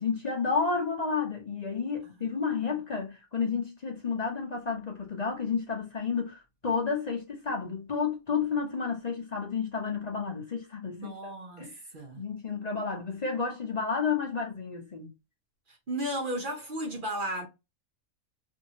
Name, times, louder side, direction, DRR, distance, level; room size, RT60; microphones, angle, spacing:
voice 1, 0.0-11.3 11.6-11.8 12.2-15.1, left 5 dB, 40° left, 0.6 m, -31 dB
voice 2, 2.4-2.7 11.0-12.2 15.7-17.5, right 1 dB, 50° right, 0.6 m, -35 dB
2.8 x 2.7 x 2.7 m
omnidirectional pair, 1.5 m